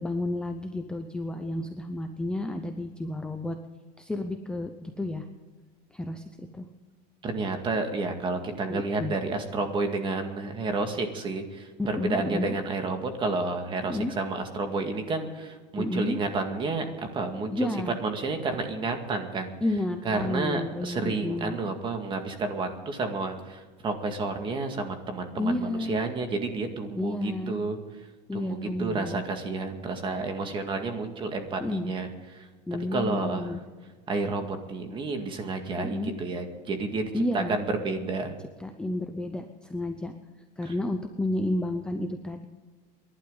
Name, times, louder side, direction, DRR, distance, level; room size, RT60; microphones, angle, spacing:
voice 1, 0.0-3.6 4.0-5.2 5.9-6.7 8.7-9.1 11.8-12.5 13.9-14.1 15.8-16.2 17.5-18.0 19.6-21.6 25.4-26.0 27.0-27.6 28.3-29.2 31.6-31.9 32.7-33.6 35.8-36.1 37.1-37.6 38.6-40.1 40.6-42.5, left 1 dB, 5° left, 5 dB, 0.7 m, -31 dB
voice 2, 7.2-16.8 17.1-17.7 18.0-19.5 20.0-27.8 28.3-32.1 32.9-33.5 34.1-38.3, right 3 dB, 25° right, 5 dB, 2.0 m, -30 dB
28.5 x 11.5 x 4.0 m, 1.4 s
supercardioid pair, 155°, 21 cm